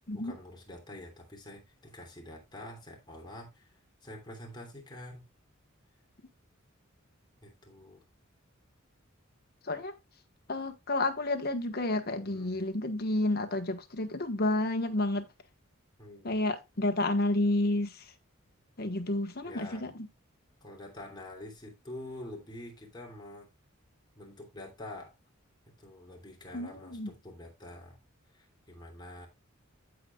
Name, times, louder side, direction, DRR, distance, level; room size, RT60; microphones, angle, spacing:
voice 1, 0.1-3.7 4.0-5.2 7.4-8.0 12.3-12.5 16.0-16.3 19.4-19.9 20.6-23.5 24.1-25.1 25.8-28.0 28.3-29.3, left 1 dB, 20° left, 2.9 m, -46 dB
voice 2, 10.5-15.3 16.2-18.0 18.8-20.1 26.5-27.1, left 2 dB, 50° left, 1.4 m, -30 dB
15.0 x 5.2 x 2.4 m
head